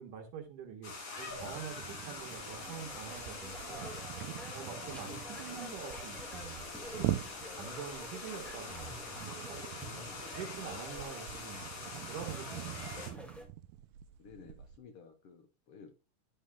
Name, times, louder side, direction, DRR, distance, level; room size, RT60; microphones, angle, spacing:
voice 1, 0.0-3.9 4.5-6.7 7.1-7.2 7.5-9.6 10.3-11.7 12.0-13.3, right 7 dB, 70° right, 4 dB, 2.9 m, -46 dB
sound 1, 0.8-13.1, left 3 dB, 45° left, 3.1 m, -44 dB
sound 2, 1.3-14.8, right 14 dB, 85° right, 2.2 m, -44 dB
sound 3, 2.3-13.5, equal, ahead, 0.6 m, -50 dB
voice 2, 4.8-5.1 9.8-10.3 14.2-15.9, left 5 dB, 70° left, 6 dB, 1.3 m, -55 dB
9.9 x 8.2 x 2.2 m, 0.29 s
omnidirectional pair, 3.8 m